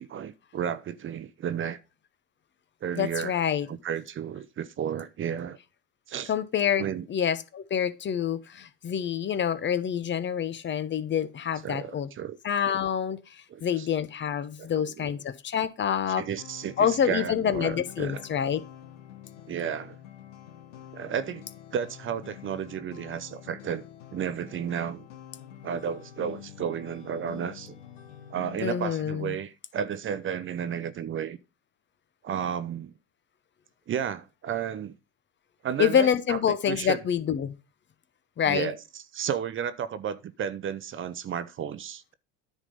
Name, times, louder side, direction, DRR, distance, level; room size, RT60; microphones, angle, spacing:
voice 1, 0.0-1.8 2.8-3.3 3.7-5.6 6.1-6.3 6.8-7.1 11.6-12.4 13.5-13.9 14.6-15.1 16.2-18.2 19.5-20.0 20.9-21.4 21.7-23.8 24.1-25.1 25.6-27.8 28.3-31.4 32.2-32.9 33.9-35.0 35.6-36.4 36.7-37.0 38.5-38.8 39.1-42.1, right 8 dB, 35° right, 0.7 m, -32 dB
voice 2, 3.0-3.7 6.3-12.1 12.4-16.2 16.8-18.6 28.6-29.4 35.8-37.5 38.4-38.7, left 8 dB, 30° left, 0.7 m, -27 dB
sound 1, 16.4-28.6, left 10 dB, 85° left, 1.3 m, -47 dB
9.9 x 3.7 x 5.3 m
hypercardioid pair, 85°, 36 cm